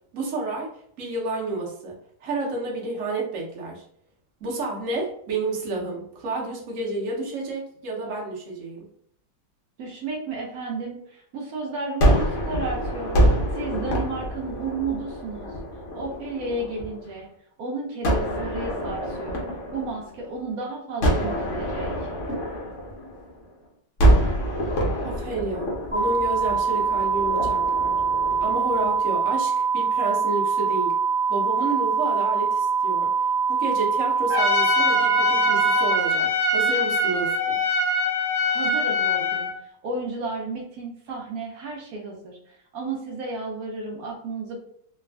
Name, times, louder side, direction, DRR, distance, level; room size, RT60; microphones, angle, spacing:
voice 1, 0.1-0.7 1.0-1.9 2.2-3.8 4.4-8.9 25.0-27.9 28.4-31.0 31.3-33.1 33.5-37.6, right 2 dB, 60° right, -2 dB, 0.8 m, -30 dB
voice 2, 9.8-13.2 13.5-15.5 15.9-17.3 17.6-19.4 19.7-21.9 38.5-44.6, right 3 dB, 90° right, -1 dB, 0.8 m, -32 dB
Gunshot gunfire, 12.0-17.1 18.0-20.5 21.0-23.5 24.0-29.2, right 1 dB, 85° left, 0.6 m, -26 dB
sound 1, 25.9-35.9, right 5 dB, 40° right, 0.4 m, -23 dB
Trumpet, 34.3-39.5, left 1 dB, 40° left, 0.4 m, -23 dB
3.3 x 2.3 x 2.2 m, 0.66 s
omnidirectional pair, 2.3 m